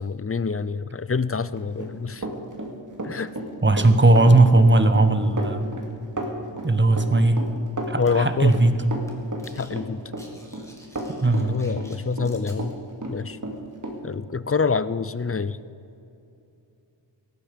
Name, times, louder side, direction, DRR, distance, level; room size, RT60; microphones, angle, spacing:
voice 1, 0.0-2.2 3.0-3.3 8.0-8.6 9.6-10.0 11.4-12.7 13.1-13.4 14.0-15.6, left 5 dB, 30° left, 16 dB, 0.5 m, -26 dB
Run, 1.6-12.7 13.0-14.0, right 1 dB, 40° right, 2.4 m, -32 dB
voice 2, 3.6-5.8 6.6-7.4 7.9-8.7 11.2-11.6, right 2 dB, 25° right, 10 dB, 1.1 m, -17 dB
sound 1, 8.1-8.2 8.5-8.8 9.0-9.7 10.0-12.6, equal, 5° left, 2.5 m, -50 dB
18.0 x 14.5 x 5.2 m, 2.6 s
wide cardioid pair, 95°, 46 cm